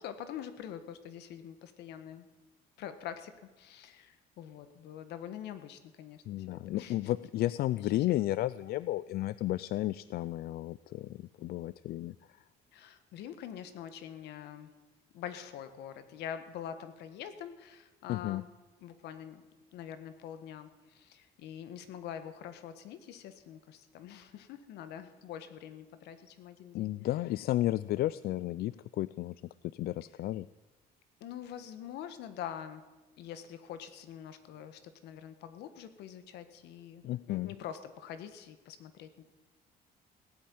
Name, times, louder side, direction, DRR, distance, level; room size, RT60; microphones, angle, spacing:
voice 1, 0.0-2.3 2.8-6.2 6.5-7.0 7.8-8.2 12.7-14.7 15.1-18.5 18.8-19.4 19.7-26.9 31.2-32.8 33.2-39.3, left 9 dB, 80° left, 11 dB, 1.6 m, -45 dB
voice 2, 6.3-12.2 18.1-18.4 26.7-29.3 29.7-30.5 37.0-37.5, left 15 dB, 65° left, 18 dB, 0.4 m, -33 dB
17.0 x 8.6 x 9.5 m, 1.2 s
cardioid pair, 110°, 17 cm